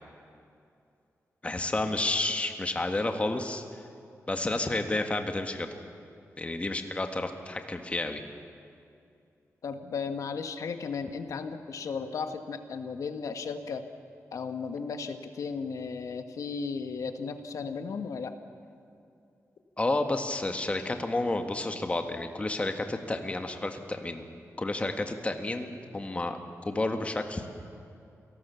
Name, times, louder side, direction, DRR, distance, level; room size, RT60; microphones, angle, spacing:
voice 1, 1.4-3.8 4.3-5.7 6.4-8.2 19.8-24.2 24.6-27.5, left 2 dB, 20° left, 6 dB, 1.7 m, -31 dB
voice 2, 9.6-13.9 14.3-18.4, left 5 dB, 80° left, 8 dB, 1.5 m, -35 dB
28.5 x 18.5 x 7.1 m, 2.5 s
wide cardioid pair, 125°, 6 cm